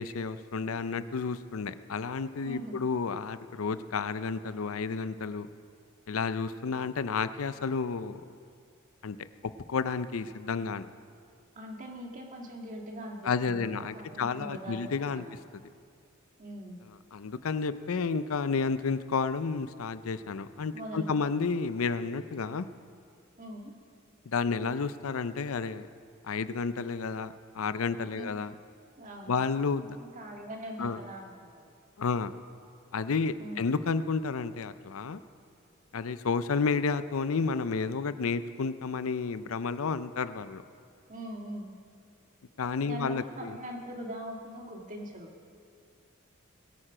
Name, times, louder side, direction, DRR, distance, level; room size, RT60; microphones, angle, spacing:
voice 1, 0.0-5.5 6.1-8.2 9.0-9.2 9.7-10.9 13.2-15.2 17.1-22.7 24.3-25.9 26.2-28.5 29.3-30.0 30.8-31.0 32.0-32.3 32.9-35.2 35.9-40.6 42.6-43.6, left 5 dB, 80° left, 13 dB, 0.5 m, -31 dB
voice 2, 2.4-2.8 11.6-15.4 16.4-16.8 20.7-21.4 23.4-23.7 28.1-28.4 29.0-29.4 30.0-31.6 33.4-33.7 41.1-41.7 42.8-45.3, right 1 dB, 40° right, 1 dB, 1.8 m, -42 dB
21.5 x 8.9 x 5.0 m, 2.2 s
head